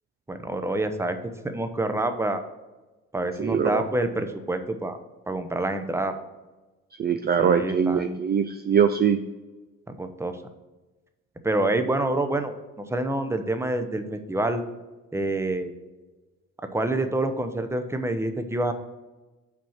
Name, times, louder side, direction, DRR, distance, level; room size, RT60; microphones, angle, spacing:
voice 1, 0.3-1.2 1.4-2.4 3.1-5.0 5.3-6.1 7.4-8.2 9.9-10.4 11.4-14.6 15.1-15.7 16.7-18.7, right 2 dB, 10° right, 8 dB, 0.7 m, -27 dB
voice 2, 3.4-3.8 7.0-9.2, right 7 dB, 35° right, 9 dB, 0.4 m, -22 dB
5.9 x 4.4 x 5.7 m, 1.2 s
cardioid pair, 90°, 30 cm